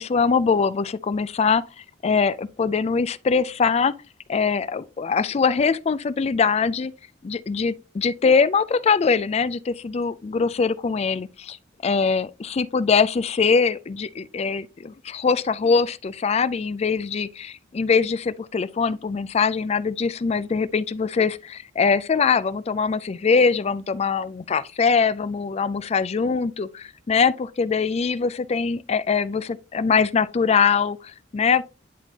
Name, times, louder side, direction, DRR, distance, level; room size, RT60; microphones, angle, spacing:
voice 1, 0.0-1.6 2.0-3.9 4.3-6.9 7.2-11.6 11.8-31.6, left 5 dB, 35° left, 0.3 m, -22 dB
10.5 x 3.7 x 2.8 m
head